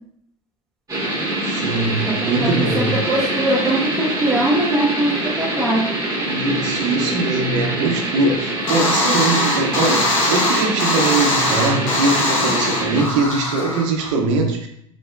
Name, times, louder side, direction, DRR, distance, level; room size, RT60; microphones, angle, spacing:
sound 1, 0.9-13.0, right 1 dB, 20° right, 1.5 m, -24 dB
voice 1, 1.5-2.9 6.2-14.7, right 3 dB, 70° right, 3 dB, 0.7 m, -21 dB
voice 2, 2.0-6.0, right 1 dB, ahead, -8 dB, 1.2 m, -22 dB
sound 2, 8.7-14.1, left 2 dB, 85° left, 1.0 m, -21 dB
4.2 x 3.2 x 2.4 m, 0.73 s
hypercardioid pair, 70°, 17 cm